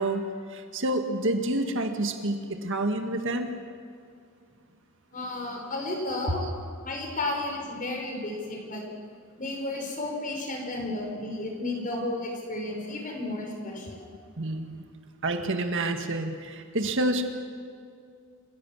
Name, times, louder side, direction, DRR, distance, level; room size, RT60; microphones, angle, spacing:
voice 1, 0.0-3.5 14.4-14.8 15.2-17.2, right 1 dB, 65° right, 5 dB, 1.9 m, -28 dB
voice 2, 5.1-6.4 6.8-8.8 9.4-14.0, left 2 dB, 40° left, 2 dB, 5.5 m, -33 dB
29.0 x 16.5 x 7.4 m, 2.3 s
head